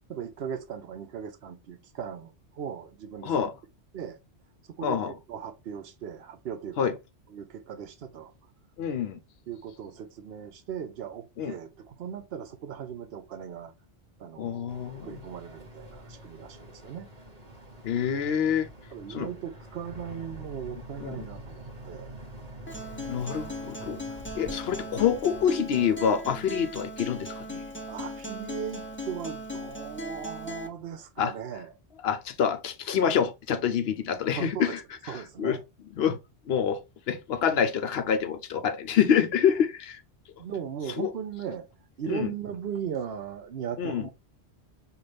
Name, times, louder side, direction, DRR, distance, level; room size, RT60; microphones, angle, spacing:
voice 1, 0.1-3.5 3.9-4.2 4.8-7.0 7.3-8.3 9.5-13.7 14.2-17.1 18.9-22.1 24.4-24.6 27.9-31.7 34.3-34.7 35.1-35.6 40.4-41.7 42.0-44.1, right 8 dB, 65° right, 0.8 m, -38 dB
voice 2, 4.8-5.1 6.8-6.9 8.8-9.2 11.4-11.5 14.4-15.1 17.8-18.7 19.1-19.3 21.0-21.2 23.0-24.0 24.4-27.6 31.2-31.3 32.0-34.8 35.1-35.6 36.0-36.2 36.5-36.8 37.1-40.0 41.0-41.1 42.1-42.3 43.8-44.0, left 8 dB, 70° left, 0.8 m, -26 dB
Boat Water vehicle, 14.7-25.5, right 1 dB, 35° right, 1.1 m, -46 dB
Acoustic guitar, 22.7-30.7, left 1 dB, 15° left, 0.6 m, -38 dB
5.4 x 2.5 x 3.2 m
omnidirectional pair, 1.1 m